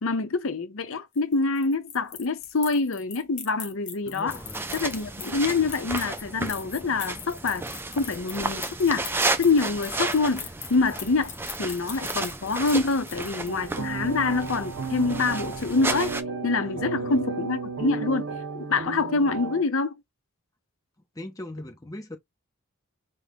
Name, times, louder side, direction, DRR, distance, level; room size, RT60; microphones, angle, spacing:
voice 1, 0.0-4.4 4.7-7.6 7.9-9.1 9.4-11.3 11.6-16.1 16.4-19.9, left 4 dB, 65° left, 0.7 m, -26 dB
sound 1, 1.1-13.7, left 7 dB, 35° left, 1.3 m, -40 dB
voice 2, 4.1-4.7 16.6-17.2 21.1-22.2, left 1 dB, 15° left, 0.7 m, -40 dB
sound 2, 4.3-16.2, right 2 dB, 10° right, 0.3 m, -33 dB
sound 3, 13.5-19.6, right 4 dB, 60° right, 0.7 m, -33 dB
5.1 x 2.1 x 3.7 m
head